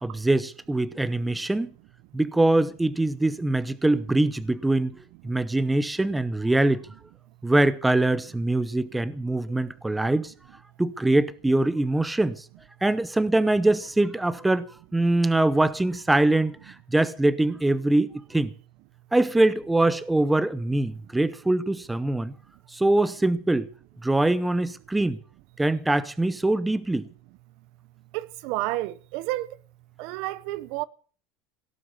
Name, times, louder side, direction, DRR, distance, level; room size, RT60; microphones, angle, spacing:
voice 1, 0.0-1.7 2.1-5.0 5.2-6.8 7.4-10.3 10.8-12.4 12.8-14.7 14.9-18.5 19.1-22.3 22.7-23.7 24.0-25.2 25.6-27.1, right 2 dB, 5° right, 0.7 m, -23 dB
voice 2, 28.1-29.6 30.0-30.8, right 17 dB, 60° right, 0.7 m, -31 dB
17.5 x 7.0 x 9.3 m
cardioid pair, 160°, 0 cm